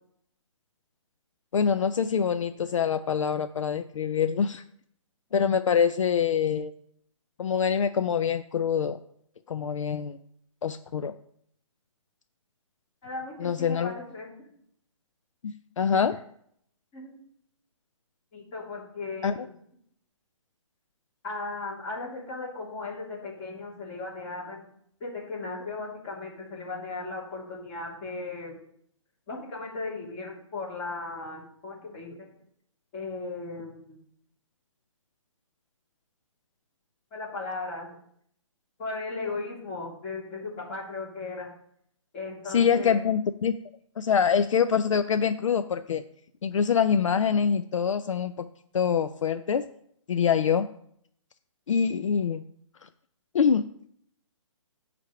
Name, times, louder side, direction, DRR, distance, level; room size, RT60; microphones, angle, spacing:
voice 1, 1.5-4.6 5.3-6.7 7.4-9.0 9.5-10.2 10.6-11.1 13.4-13.9 15.4-16.2 19.2-19.3 42.5-43.6 44.0-46.0 46.4-48.3 48.7-49.6 50.1-50.7 51.7-52.4 53.3-53.6, left 7 dB, 70° left, 10 dB, 0.5 m, -25 dB
voice 2, 13.0-14.3 16.1-16.2 16.9-17.1 18.3-19.5 21.2-24.7 25.0-28.6 29.3-32.3 32.9-34.0 37.1-37.9 38.8-41.5 42.1-43.0, left 3 dB, 25° left, -4 dB, 2.9 m, -37 dB
9.7 x 3.4 x 6.8 m, 0.68 s
hypercardioid pair, 155°, 17 cm